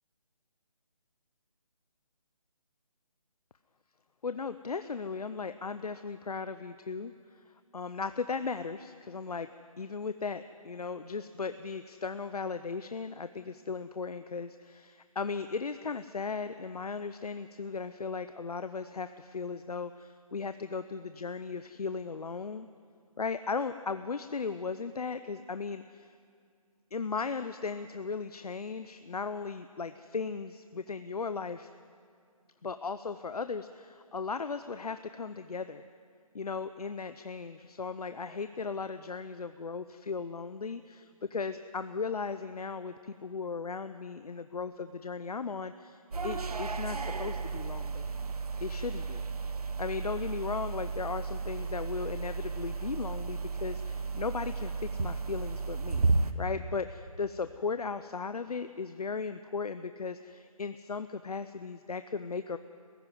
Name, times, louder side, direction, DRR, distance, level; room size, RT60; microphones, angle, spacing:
voice 1, 4.2-7.1 7.7-9.5 9.8-22.7 23.2-26.1 26.9-31.7 32.6-35.9 36.3-48.1 48.6-49.2 49.8-56.1 56.3-62.6, left 5 dB, 90° left, 11 dB, 0.8 m, -37 dB
sound 1, 46.1-56.3, right 4 dB, 85° right, 1.4 m, -33 dB
18.5 x 15.5 x 9.5 m, 2.2 s
hypercardioid pair, 170°, 19 cm